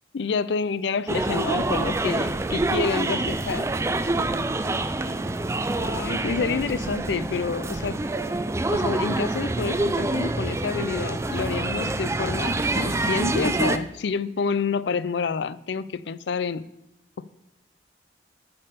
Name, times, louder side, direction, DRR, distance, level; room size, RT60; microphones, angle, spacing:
voice 1, 0.1-3.7 5.1-5.2 5.8-8.0 8.7-16.6 17.2-17.3, left 5 dB, 70° left, 17 dB, 0.4 m, -28 dB
sound 1, 1.1-13.8, right 2 dB, 15° right, 0.4 m, -26 dB
10.5 x 5.6 x 6.8 m, 0.87 s
head